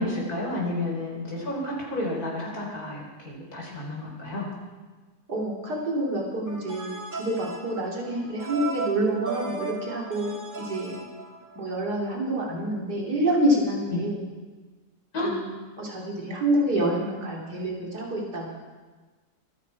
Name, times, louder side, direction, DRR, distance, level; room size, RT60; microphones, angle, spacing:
voice 1, 0.0-4.5 13.9-14.0 15.1-15.3, left 1 dB, 65° left, -2 dB, 4.6 m, -31 dB
voice 2, 5.3-10.3 10.6-11.0 11.6-14.2 15.2-18.5, right 1 dB, 75° right, -2 dB, 3.5 m, -27 dB
sound 1, 6.5-11.8, right 3 dB, 10° right, 1.8 m, -36 dB
25.5 x 10.5 x 4.7 m, 1.3 s
omnidirectional pair, 1.7 m